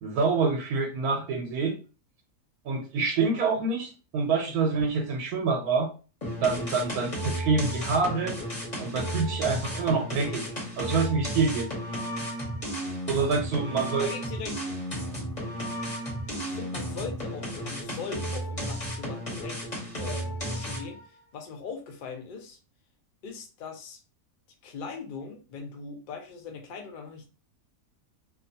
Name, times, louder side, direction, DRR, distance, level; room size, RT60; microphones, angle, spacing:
voice 1, 0.0-1.7 2.6-5.9 6.4-8.3 8.8-10.4 10.8-11.7 13.1-14.1, right 4 dB, 90° right, 2 dB, 1.1 m, -26 dB
sound 1, 6.2-21.0, equal, 30° left, 1.0 m, -33 dB
voice 2, 14.0-14.6 16.4-19.6 20.0-22.6 23.2-24.0 24.6-27.3, left 5 dB, 75° left, 3 dB, 0.4 m, -40 dB
2.7 x 2.3 x 2.6 m, 0.34 s
omnidirectional pair, 1.6 m